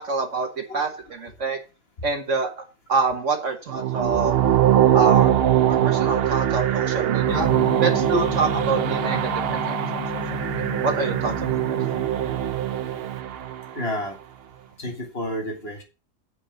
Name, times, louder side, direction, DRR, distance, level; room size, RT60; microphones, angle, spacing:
voice 1, 0.0-1.6 2.0-2.5 2.9-4.4 4.9-5.3 5.7-7.5 7.8-9.8 10.1-11.8, right 4 dB, 50° right, 5 dB, 1.6 m, -26 dB
sound 1, 3.7-13.8, right 11 dB, 75° right, 0.5 m, -22 dB
Gong, 7.3-13.1, left 6 dB, 70° left, 1.6 m, -34 dB
voice 2, 13.7-14.2 14.8-15.8, equal, 35° left, 3 dB, 1.8 m, -29 dB
8.6 x 4.9 x 6.3 m, 0.31 s
omnidirectional pair, 1.8 m